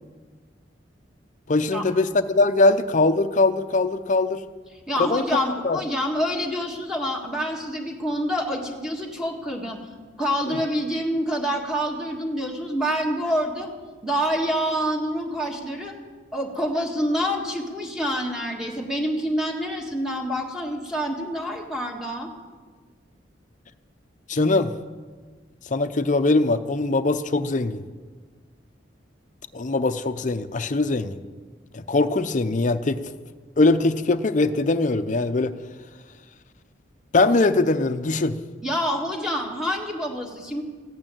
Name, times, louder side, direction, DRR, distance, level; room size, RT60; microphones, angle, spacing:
voice 1, 1.5-4.4 5.0-5.8 10.5-10.6 24.3-24.7 25.7-27.8 29.5-31.2 31.7-33.0 33.6-35.5 37.1-38.4, left 2 dB, 45° left, 10 dB, 0.7 m, -21 dB
voice 2, 4.9-9.8 10.2-13.7 14.0-15.9 16.3-22.3 38.6-40.6, equal, 5° right, -1 dB, 1.6 m, -27 dB
15.0 x 8.9 x 8.9 m, 1.5 s
head